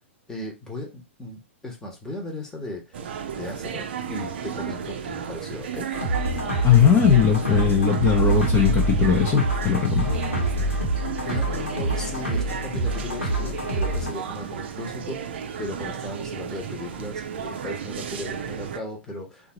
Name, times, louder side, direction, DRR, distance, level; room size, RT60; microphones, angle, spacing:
voice 1, 0.3-5.9 11.2-19.5, left 1 dB, 10° left, 0 dB, 1.1 m, -36 dB
sound 1, 2.9-18.8, right 7 dB, 55° right, 0.5 m, -34 dB
sound 2, 5.9-14.1, right 1 dB, 85° left, 1.1 m, -26 dB
voice 2, 6.6-10.1, left 7 dB, 25° left, -2 dB, 0.8 m, -19 dB
3.7 x 2.5 x 3.0 m, 0.26 s
figure-of-eight pair, 105°, 7 cm